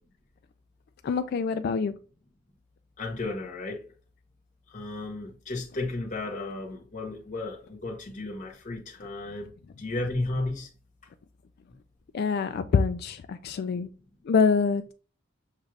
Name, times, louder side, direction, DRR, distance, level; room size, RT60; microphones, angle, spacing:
voice 1, 1.0-1.9 12.1-13.9 14.3-14.9, left 5 dB, 55° left, 0.3 m, -25 dB
voice 2, 3.0-3.9 4.7-9.5 9.8-10.7, left 2 dB, 40° left, 1.1 m, -34 dB
6.4 x 2.4 x 3.2 m
head